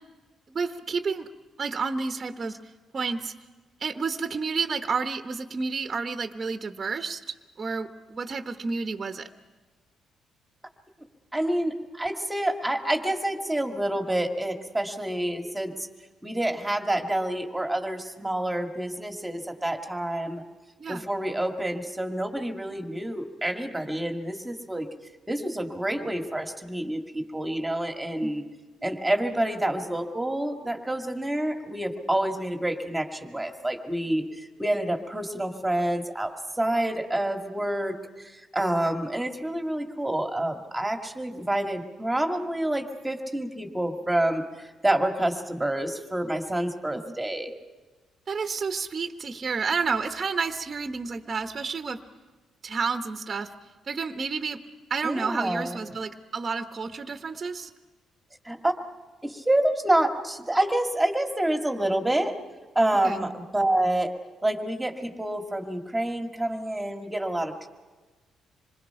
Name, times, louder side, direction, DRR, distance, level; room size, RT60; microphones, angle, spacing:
voice 1, 0.5-1.3 1.6-2.6 2.9-3.3 3.8-7.2 7.6-9.3 20.8-21.0 28.2-28.3 48.3-52.0 52.6-53.5 53.9-54.6 54.9-57.7 63.0-63.2, right 4 dB, 35° right, 6 dB, 1.1 m, -30 dB
voice 2, 11.3-15.9 16.2-20.4 20.9-24.9 25.3-28.4 28.8-47.5 55.0-55.8 58.4-58.7 59.2-62.3 62.8-64.1 64.4-67.7, right 1 dB, 10° right, 4 dB, 1.9 m, -28 dB
26.5 x 21.0 x 5.8 m, 1.3 s
cardioid pair, 90°, 0 cm